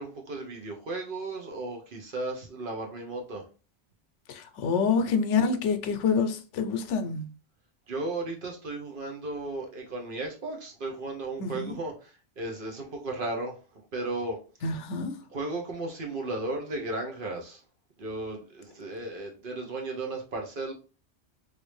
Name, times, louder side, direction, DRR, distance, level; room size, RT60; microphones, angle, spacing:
voice 1, 0.0-3.4 7.9-13.6 13.9-14.4 15.3-17.6 18.0-20.7, right 2 dB, 50° right, 0.8 m, -35 dB
voice 2, 4.3-7.3 11.4-11.7 14.6-15.1, left 5 dB, 80° left, 0.9 m, -27 dB
3.2 x 2.6 x 3.1 m
omnidirectional pair, 1.2 m